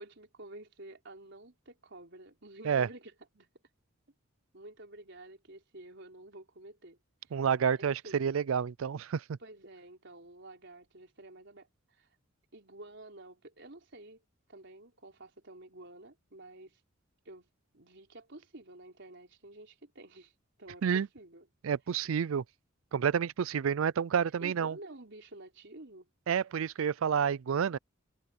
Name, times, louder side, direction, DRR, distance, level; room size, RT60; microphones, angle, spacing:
voice 1, 0.0-3.5 4.5-7.0 7.2-7.3 7.7-8.2 9.4-12.1 12.5-14.2 14.5-16.8 17.2-17.5 17.7-20.3 20.6-21.5 24.4-26.1, right 2 dB, 60° right, 4.5 m, -50 dB
voice 2, 7.3-9.4 20.8-21.1 21.6-22.4 22.9-24.8 26.3-27.8, right 7 dB, 80° right, 0.4 m, -29 dB
head